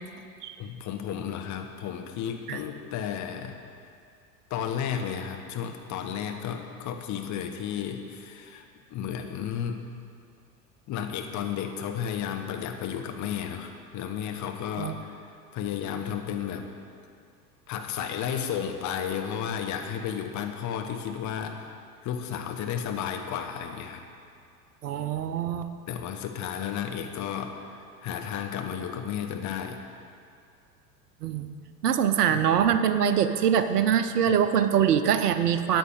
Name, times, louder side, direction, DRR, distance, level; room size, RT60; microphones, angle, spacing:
voice 1, 0.6-3.6 4.5-8.6 8.9-9.8 10.9-15.2 15.5-16.7 17.7-21.7 22.0-24.0 25.9-27.6 28.0-29.8 32.3-32.4, left 8 dB, 35° left, 5 dB, 1.2 m, -33 dB
voice 2, 24.8-25.7 31.2-31.5 31.8-35.8, right 8 dB, 70° right, 10 dB, 0.9 m, -23 dB
13.5 x 8.9 x 4.9 m, 2.4 s
figure-of-eight pair, 80°, 49 cm